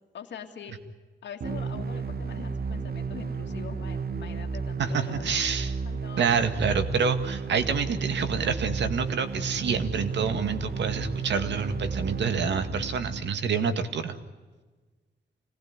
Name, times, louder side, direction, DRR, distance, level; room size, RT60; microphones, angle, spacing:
voice 1, 0.1-0.8 1.2-5.3 5.9-6.3, left 7 dB, 85° left, 3 dB, 2.3 m, -43 dB
sound 1, 1.4-13.4, right 5 dB, 60° right, 1.4 m, -33 dB
voice 2, 4.8-5.7 6.2-14.2, right 6 dB, 80° right, 9 dB, 1.9 m, -27 dB
25.5 x 19.0 x 9.6 m, 1.3 s
wide cardioid pair, 150°, 18 cm